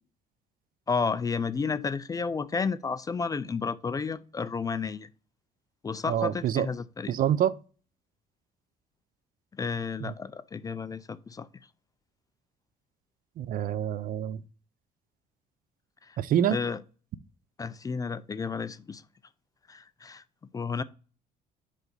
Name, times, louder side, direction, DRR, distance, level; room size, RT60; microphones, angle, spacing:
voice 1, 0.9-5.1 5.8-7.1 9.5-11.5 16.0-16.2 16.5-16.8 17.6-19.0 19.7-20.2 20.5-20.8, left 5 dB, 20° left, 0.3 m, -32 dB
voice 2, 6.1-6.7 7.1-7.5 10.0-10.1 13.4-14.4 16.2-16.6, right 10 dB, 55° right, 0.5 m, -26 dB
5.0 x 3.9 x 5.2 m
cardioid pair, 110°, 17 cm